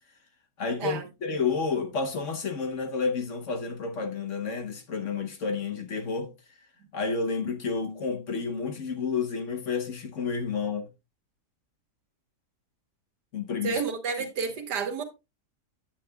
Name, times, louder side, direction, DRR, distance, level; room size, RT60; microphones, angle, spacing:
voice 1, 0.6-6.3 6.9-10.9 13.3-13.8 14.2-14.3, left 5 dB, 55° left, 1.2 m, -30 dB
voice 2, 13.6-15.0, right 5 dB, 90° right, 1.9 m, -30 dB
8.9 x 8.4 x 2.2 m
omnidirectional pair, 1.7 m